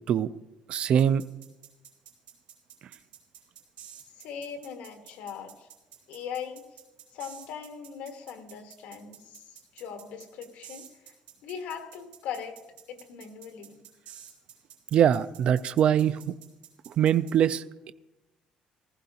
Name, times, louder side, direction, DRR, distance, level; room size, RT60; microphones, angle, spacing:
voice 1, 0.7-1.2 14.9-16.3 16.9-17.9, right 9 dB, 45° right, 14 dB, 0.3 m, -23 dB
sound 1, 1.0-17.3, right 10 dB, 70° right, 4.0 m, -50 dB
voice 2, 4.2-5.7 6.1-6.8 7.1-11.1 11.4-12.6 12.9-13.8, left 7 dB, 75° left, 6 dB, 1.4 m, -40 dB
17.0 x 14.5 x 2.8 m, 1.0 s
cardioid pair, 170°, 3 cm